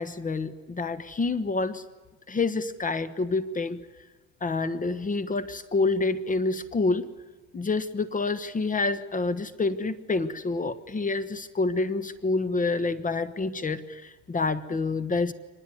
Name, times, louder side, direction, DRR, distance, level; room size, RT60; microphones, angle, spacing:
voice 1, 0.0-1.8 2.3-3.8 4.4-7.1 7.5-15.3, left 3 dB, 25° left, 13 dB, 1.4 m, -28 dB
24.5 x 20.5 x 9.5 m, 1.2 s
supercardioid pair, 105°, 34 cm